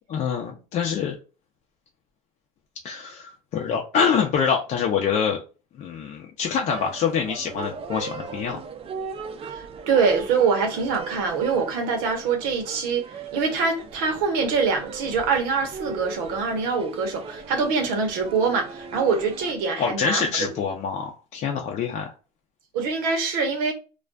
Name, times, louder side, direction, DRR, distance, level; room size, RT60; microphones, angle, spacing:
voice 1, 0.1-1.1 2.8-5.4 5.8-8.6 19.8-22.1, left 6 dB, 55° left, 0.6 m, -25 dB
sound 1, 6.7-19.5, right 5 dB, 40° right, 0.5 m, -38 dB
voice 2, 9.5-20.5 22.7-23.7, right 5 dB, 85° right, 0.8 m, -24 dB
2.4 x 2.2 x 2.3 m
supercardioid pair, 90°, 15 cm